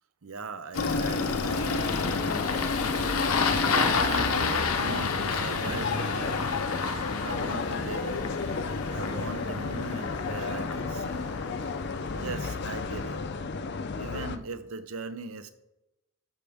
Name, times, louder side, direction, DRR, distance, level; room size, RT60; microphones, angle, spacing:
voice 1, 0.2-2.8 3.3-6.5 7.2-8.2 8.9-11.3 12.1-13.2 14.0-15.5, right 4 dB, 80° right, 11 dB, 0.7 m, -40 dB
Engine starting, 0.7-13.2, left 4 dB, 90° left, 0.9 m, -31 dB
sound 1, 0.8-14.4, left 4 dB, 50° left, 0.5 m, -32 dB
13.0 x 5.1 x 3.5 m, 0.96 s
head